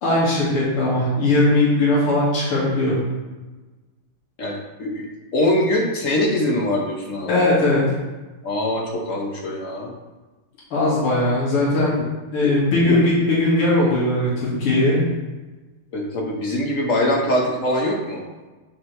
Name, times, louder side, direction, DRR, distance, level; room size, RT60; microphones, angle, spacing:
voice 1, 0.0-2.9 7.3-7.8 10.7-12.0 12.3-15.0, left 2 dB, 90° left, -7 dB, 2.8 m, -19 dB
voice 2, 4.4-5.1 5.3-7.3 8.4-9.9 12.4-12.5 12.9-13.0 15.9-18.2, left 1 dB, 50° left, -1 dB, 1.0 m, -23 dB
8.6 x 5.4 x 3.2 m, 1.2 s
omnidirectional pair, 2.4 m